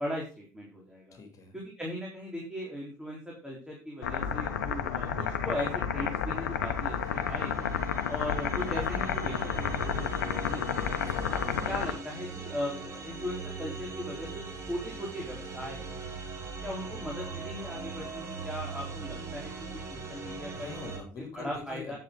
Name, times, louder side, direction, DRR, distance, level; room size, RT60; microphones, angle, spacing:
voice 1, 0.0-1.2 1.5-5.1 5.4-7.7 8.1-10.7 11.3-11.4 11.6-15.9 16.6-20.7 21.3-22.0, equal, 5° right, -3 dB, 4.0 m, -38 dB
voice 2, 1.1-1.6 6.8-7.2 11.1-11.6 20.5-22.0, left 4 dB, 40° left, 4 dB, 3.2 m, -45 dB
sound 1, 4.0-11.9, left 7 dB, 75° left, 1.0 m, -31 dB
sound 2, 6.6-21.0, right 4 dB, 35° right, 3.0 m, -41 dB
10.5 x 7.9 x 3.8 m, 0.36 s
figure-of-eight pair, 60°, 9 cm